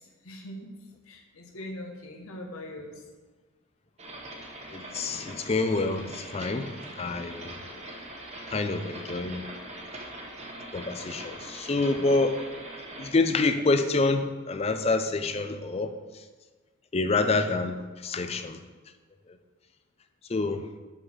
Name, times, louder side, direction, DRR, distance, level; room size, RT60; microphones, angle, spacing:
voice 1, 0.0-0.7 1.1-3.0, left 1 dB, 80° left, 1 dB, 1.1 m, -41 dB
sound 1, 4.0-13.1, right 1 dB, 30° right, 0.9 m, -42 dB
voice 2, 4.7-7.6 8.5-9.4 10.7-12.4 13.0-15.9 16.9-18.6 20.3-20.7, left 3 dB, 30° left, 9 dB, 0.4 m, -27 dB
5.7 x 5.6 x 6.1 m, 1.4 s
head